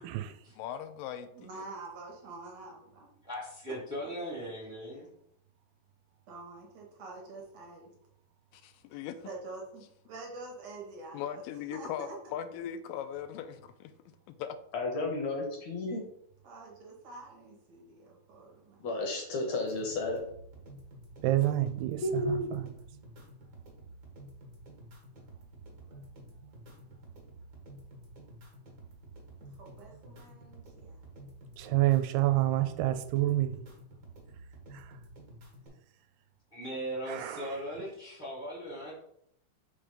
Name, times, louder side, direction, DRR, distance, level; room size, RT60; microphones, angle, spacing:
voice 1, 0.6-1.5 8.5-9.3 11.1-13.9 14.4-14.6, left 9 dB, 85° left, 2.2 m, -39 dB
voice 2, 1.3-3.1 6.3-7.9 9.3-11.4 11.7-12.2 16.4-18.8 29.4-31.0, right 3 dB, 65° right, 2.0 m, -46 dB
voice 3, 3.2-5.1 36.5-38.9, equal, 5° right, 0.4 m, -39 dB
voice 4, 14.7-16.0 18.8-20.2 22.0-22.5, left 2 dB, 70° left, 1.8 m, -32 dB
sound 1, 19.7-35.7, right 1 dB, 40° right, 1.6 m, -51 dB
voice 5, 21.2-22.7 31.6-33.6 34.7-34.9 37.1-37.6, right 15 dB, 85° right, 2.2 m, -28 dB
5.5 x 3.4 x 5.1 m
omnidirectional pair, 3.9 m